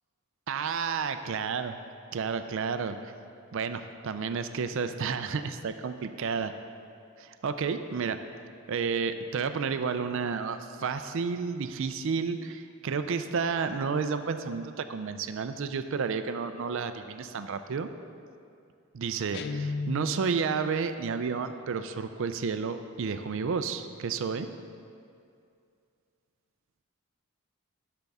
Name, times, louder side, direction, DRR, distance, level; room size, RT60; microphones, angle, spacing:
voice 1, 0.5-1.7 2.1-3.1 3.5-6.5 7.2-8.2 8.7-17.9 18.9-24.5, right 5 dB, 60° right, 10 dB, 0.4 m, -31 dB
Guitar, 19.3-20.5, left 4 dB, 50° left, 0.3 m, -34 dB
11.5 x 6.7 x 3.5 m, 2.4 s
head